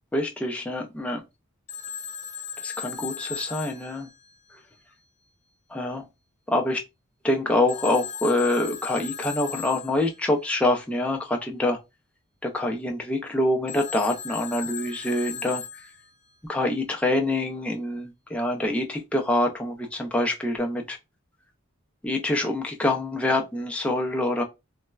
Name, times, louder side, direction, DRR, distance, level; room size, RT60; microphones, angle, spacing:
voice 1, 0.1-1.2 2.6-4.1 5.7-6.0 6.5-6.8 7.2-11.8 12.4-15.8 16.5-21.0 22.0-24.4, left 1 dB, 5° left, 0.3 m, -25 dB
Telephone, 1.7-4.8 7.7-10.2 13.7-16.3, left 7 dB, 35° left, 0.8 m, -37 dB
3.2 x 2.1 x 2.2 m
head